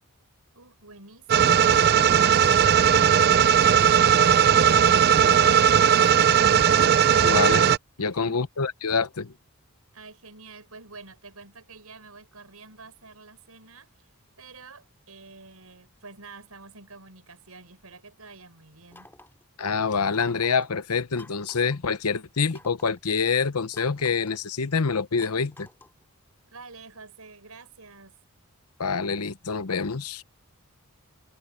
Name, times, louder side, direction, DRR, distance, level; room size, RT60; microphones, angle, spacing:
voice 1, 0.5-1.8 2.5-2.8 3.0-3.6 3.9-7.4 8.0-8.4 9.9-19.1 26.5-28.1, right 4 dB, 80° right, 6.0 m, -48 dB
sound 1, 1.3-7.8, right 8 dB, 45° right, 0.5 m, -18 dB
voice 2, 7.2-7.7 8.0-9.3 19.6-25.7 28.8-30.2, left 5 dB, 85° left, 0.9 m, -26 dB
sound 2, 18.9-19.4 20.2-20.7 21.2-21.8 22.5-23.0 23.7-24.4 25.2-26.0, left 2 dB, 10° left, 2.5 m, -50 dB
head